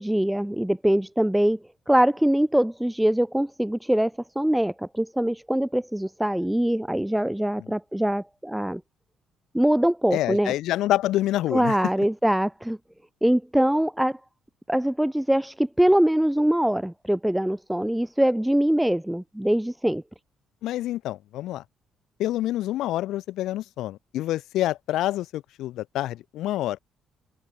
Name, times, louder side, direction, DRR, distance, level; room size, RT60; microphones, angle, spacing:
voice 1, 0.0-1.6 1.9-8.8 9.5-10.5 11.5-12.8 13.2-14.2 14.7-20.0, right 1 dB, 5° right, 0.8 m, -23 dB
voice 2, 10.1-11.7 20.6-21.6 22.2-26.8, left 14 dB, 80° left, 1.2 m, -27 dB
open air
supercardioid pair, 75°, 0 cm